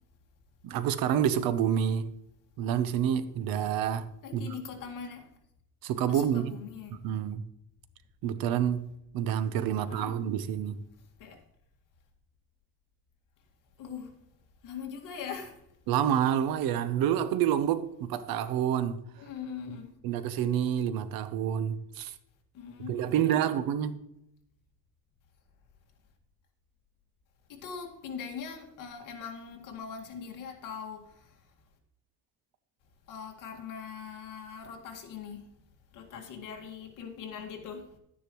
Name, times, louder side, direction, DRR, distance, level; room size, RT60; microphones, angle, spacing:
voice 1, 0.6-2.1 2.6-4.0 4.3-4.4 5.8-6.6 7.0-7.4 8.2-8.8 9.1-10.8 15.9-19.0 20.0-22.1 22.9-24.0, right 9 dB, 90° right, 0.9 m, -28 dB
voice 2, 4.2-5.3 6.1-7.0 9.8-10.2 11.2-11.4 13.8-14.2 14.6-15.6 19.2-19.9 22.5-23.5 27.5-31.4 33.1-35.5 35.9-38.0, left 6 dB, 65° left, 2.0 m, -41 dB
11.5 x 9.9 x 3.1 m
cardioid pair, 160°, 34 cm